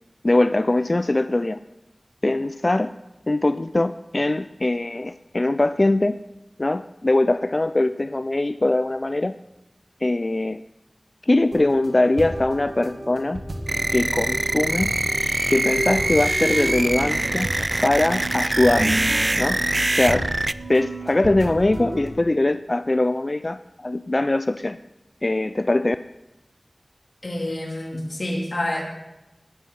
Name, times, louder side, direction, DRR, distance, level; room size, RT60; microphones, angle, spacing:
voice 1, 0.2-1.6 2.2-2.9 3.3-6.2 6.6-9.4 10.0-10.6 11.2-13.4 13.9-15.0 15.5-17.5 17.8-19.0 19.4-19.6 19.9-20.3 20.7-24.8 25.2-26.0, left 2 dB, 45° left, 12 dB, 0.3 m, -22 dB
sound 1, 11.5-22.1, right 2 dB, 65° right, 1.8 m, -32 dB
sound 2, 13.7-20.5, right 1 dB, 40° right, 0.4 m, -24 dB
voice 2, 27.2-28.8, left 1 dB, 65° left, -2 dB, 3.5 m, -28 dB
19.5 x 7.4 x 5.8 m, 0.99 s
wide cardioid pair, 65°, 0 cm